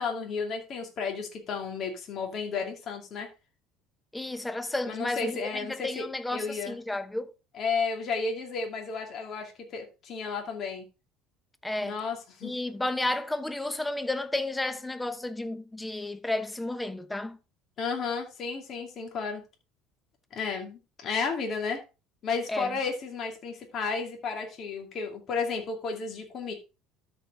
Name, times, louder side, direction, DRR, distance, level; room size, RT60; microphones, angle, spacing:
voice 1, 0.0-3.3 4.8-6.0 6.3-6.8 7.5-10.8 11.8-12.5 17.8-19.4 20.3-21.8 22.2-26.5, left 5 dB, 50° left, 2.5 m, -33 dB
voice 2, 4.1-7.3 11.6-12.0 12.4-17.4 22.5-22.8, left 2 dB, 10° left, 1.0 m, -32 dB
12.5 x 4.6 x 3.9 m
hypercardioid pair, 70°, 0 cm